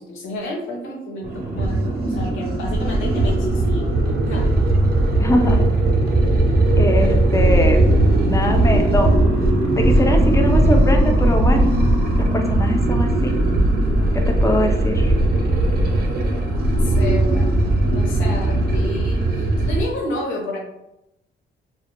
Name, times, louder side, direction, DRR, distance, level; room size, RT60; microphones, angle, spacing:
voice 1, 0.0-4.0 4.3-4.5 16.8-17.6 17.9-20.6, left 1 dB, 80° left, 0 dB, 0.7 m, -30 dB
sound 1, 1.2-19.8, right 1 dB, 50° right, 0.5 m, -18 dB
voice 2, 5.2-5.6 6.7-7.8 8.2-9.1 9.8-11.7 12.1-13.3 14.1-15.1, left 1 dB, 15° left, 3 dB, 0.4 m, -22 dB
2.1 x 2.0 x 2.9 m, 0.87 s
cardioid pair, 90°, 20 cm